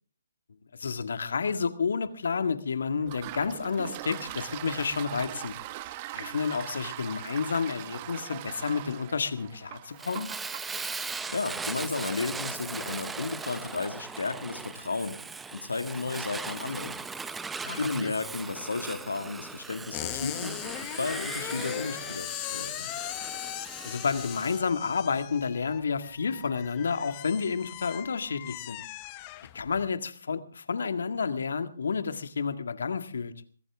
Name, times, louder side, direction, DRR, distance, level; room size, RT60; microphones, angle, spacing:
voice 1, 0.8-5.6 6.1-10.3 17.6-18.1 23.8-28.8 29.5-33.3, left 5 dB, 70° left, 9 dB, 1.8 m, -30 dB
Toilet flush, 3.0-16.4, right 16 dB, 30° right, 0.8 m, -43 dB
Fire, 10.0-24.6, right 4 dB, 5° right, 0.8 m, -39 dB
voice 2, 11.3-15.2 15.5-17.0 17.7-22.9, left 3 dB, 85° left, 8 dB, 1.9 m, -33 dB
sound 1, 19.9-29.9, left 17 dB, 30° left, 1.0 m, -39 dB
22.5 x 15.5 x 3.6 m, 0.43 s
hypercardioid pair, 145°, 0 cm